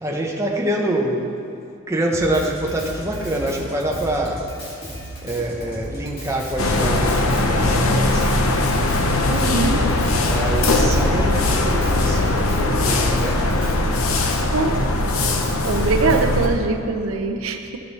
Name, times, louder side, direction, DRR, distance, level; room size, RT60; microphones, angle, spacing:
voice 1, 0.0-1.2 1.9-4.5 5.2-8.3 10.2-13.8, right 1 dB, 15° right, -1 dB, 0.8 m, -25 dB
Drum kit, 2.1-16.5, equal, 45° left, 2.3 m, -35 dB
sound 1, 6.6-16.5, left 2 dB, 85° left, 0.7 m, -20 dB
voice 2, 9.3-9.8 14.5-14.7 15.6-17.8, right 3 dB, 85° right, 5 dB, 0.6 m, -22 dB
14.0 x 5.3 x 4.1 m, 2.5 s
head